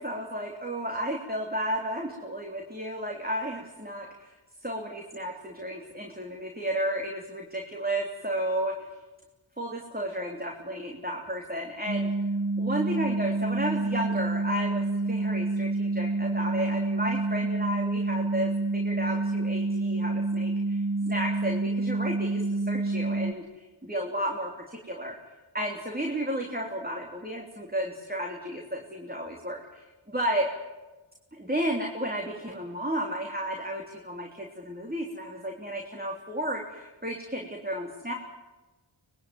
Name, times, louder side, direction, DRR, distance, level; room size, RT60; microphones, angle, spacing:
voice 1, 0.0-4.3 4.6-8.9 9.6-12.1 12.6-25.2 25.5-30.5 31.3-38.1, equal, 20° right, 0 dB, 3.4 m, -33 dB
sound 1, 11.9-23.3, right 2 dB, 45° right, 1.5 m, -28 dB
24.5 x 21.0 x 9.5 m, 1.2 s
wide cardioid pair, 45°, 47 cm